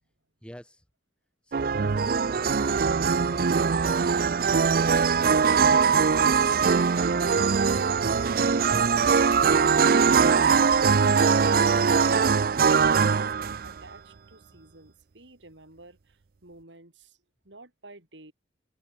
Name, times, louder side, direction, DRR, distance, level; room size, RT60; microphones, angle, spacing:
voice 1, 0.4-0.8 1.4-5.4 6.0-7.4 7.6-9.0, equal, 5° left, 2.5 m, -48 dB
sound 1, 1.5-13.8, right 5 dB, 50° right, 0.5 m, -21 dB
voice 2, 10.2-18.3, right 2 dB, 80° right, 4.8 m, -51 dB
head